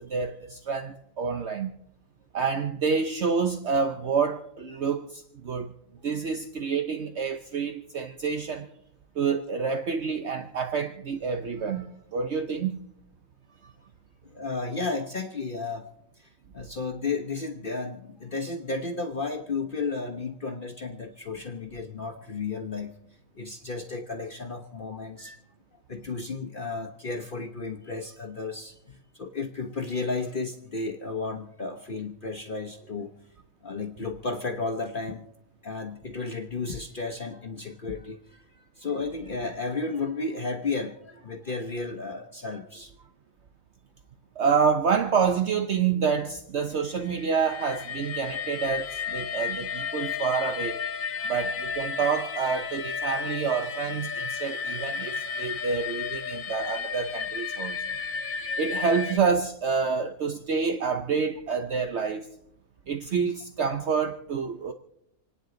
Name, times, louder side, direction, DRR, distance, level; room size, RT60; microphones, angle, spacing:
voice 1, 0.0-1.7 2.3-5.7 6.0-8.7 9.2-12.8 25.2-25.4 44.4-50.8 51.2-57.8 58.6-62.3 62.9-64.7, right 5 dB, 60° right, 1.1 m, -28 dB
voice 2, 14.2-15.9 16.2-22.9 23.4-25.3 25.9-33.1 33.6-35.2 35.6-42.9 51.1-51.3 55.5-55.6, left 3 dB, 45° left, 1.1 m, -33 dB
sound 1, 47.0-59.2, left 6 dB, 80° left, 1.5 m, -33 dB
28.5 x 9.6 x 3.9 m
omnidirectional pair, 1.4 m